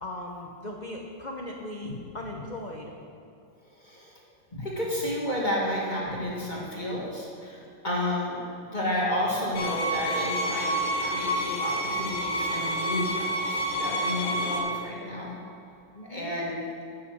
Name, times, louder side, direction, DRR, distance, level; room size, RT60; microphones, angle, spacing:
voice 1, 0.0-2.9 15.9-16.3, left 1 dB, 85° left, 0 dB, 0.4 m, -38 dB
voice 2, 3.8-4.1 4.5-8.4 8.7-15.4 16.1-16.6, left 1 dB, 25° left, -5 dB, 1.8 m, -31 dB
sound 1, 9.5-14.6, right 1 dB, 65° left, 2.2 m, -29 dB
11.5 x 5.8 x 6.4 m, 2.6 s
omnidirectional pair, 2.0 m